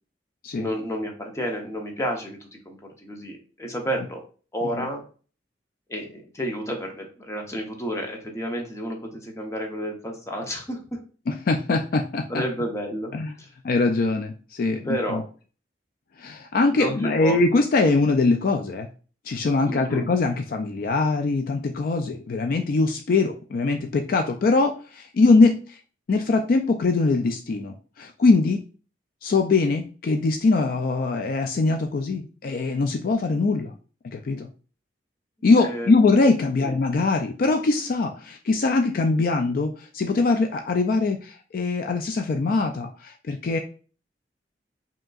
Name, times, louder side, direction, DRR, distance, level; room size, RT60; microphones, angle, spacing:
voice 1, 0.6-4.2 4.5-5.0 5.9-11.0 12.3-13.1 13.4-13.5 14.8-15.2 16.7-17.4 19.7-20.1 35.6-35.9 36.6-36.7, equal, 15° left, 1 dB, 0.8 m, -31 dB
voice 2, 11.3-12.3 13.1-13.3 13.6-15.2 16.2-18.9 19.3-25.8 26.1-28.6 29.2-33.7 34.1-34.5 35.4-43.6, left 3 dB, 55° left, 5 dB, 0.4 m, -22 dB
5.1 x 2.8 x 2.4 m, 0.38 s
head